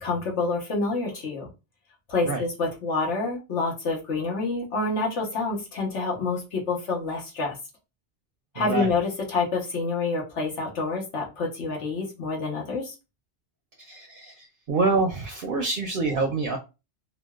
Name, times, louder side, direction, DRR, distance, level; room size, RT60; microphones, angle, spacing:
voice 1, 0.0-1.5 2.1-7.5 8.5-12.9, left 3 dB, 80° left, -1 dB, 1.3 m, -27 dB
voice 2, 8.6-8.9 13.8-16.6, right 3 dB, 60° right, 3 dB, 0.7 m, -26 dB
3.7 x 2.2 x 2.3 m, 0.28 s
omnidirectional pair, 1.1 m